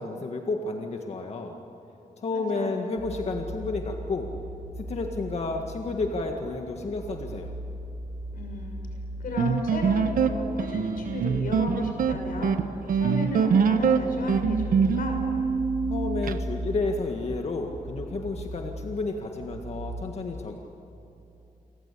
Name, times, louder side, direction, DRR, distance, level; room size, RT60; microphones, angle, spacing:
voice 1, 0.0-1.6 2.2-4.3 4.9-7.5 15.9-20.6, left 3 dB, 50° left, 3 dB, 1.9 m, -31 dB
voice 2, 2.3-2.8 8.3-8.8 9.2-15.3, left 2 dB, 90° left, 3 dB, 6.3 m, -34 dB
sound 1, 3.0-20.0, right 1 dB, 45° right, 4.5 m, -38 dB
sound 2, 9.4-16.4, right 6 dB, 85° right, 1.1 m, -24 dB
29.0 x 24.0 x 8.6 m, 2.8 s
wide cardioid pair, 150°, 14 cm